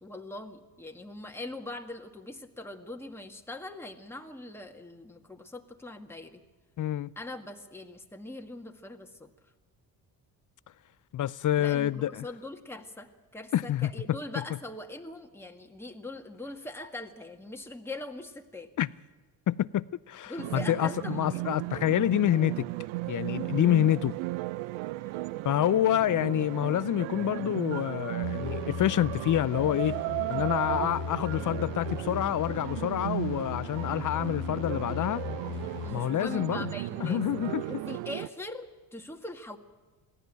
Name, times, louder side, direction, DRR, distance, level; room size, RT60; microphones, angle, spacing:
voice 1, 0.0-6.4 7.2-9.3 11.6-18.7 20.3-21.5 21.9-22.0 35.8-37.2 37.7-39.6, left 1 dB, 5° left, 1.9 m, -41 dB
voice 2, 6.8-7.1 11.1-12.2 13.5-14.2 18.8-18.9 19.5-22.7 23.1-24.1 25.4-30.0 30.3-35.2 35.9-36.7 37.0-37.7, left 12 dB, 40° left, 0.6 m, -27 dB
sound 1, 20.4-38.3, right 19 dB, 70° right, 0.6 m, -35 dB
sound 2, 28.2-35.9, left 11 dB, 60° left, 1.0 m, -38 dB
22.0 x 15.5 x 9.0 m
hypercardioid pair, 55°, 49 cm